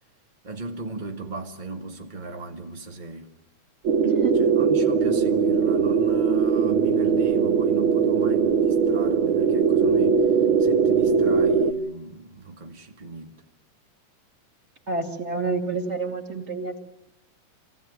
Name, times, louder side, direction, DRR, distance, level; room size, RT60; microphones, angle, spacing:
voice 1, 0.4-3.3 4.3-13.3, right 3 dB, 65° right, 0.4 m, -36 dB
sound 1, 3.8-11.7, right 6 dB, 85° right, 1.1 m, -20 dB
voice 2, 4.0-4.3 14.9-16.8, right 4 dB, 25° right, 2.1 m, -28 dB
26.0 x 16.5 x 9.4 m
omnidirectional pair, 3.7 m